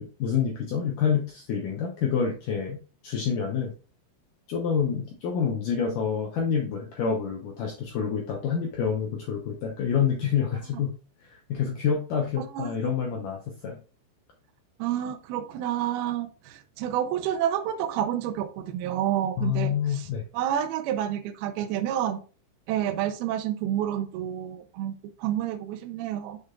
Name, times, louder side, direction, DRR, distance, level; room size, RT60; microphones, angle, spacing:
voice 1, 0.0-3.7 4.5-11.0 11.5-13.8 19.4-20.2, left 7 dB, 80° left, 1 dB, 1.8 m, -27 dB
voice 2, 12.4-12.9 14.8-20.0 20.3-22.2 22.7-26.4, right 11 dB, 90° right, 8 dB, 2.1 m, -29 dB
7.1 x 6.6 x 2.4 m, 0.37 s
omnidirectional pair, 5.1 m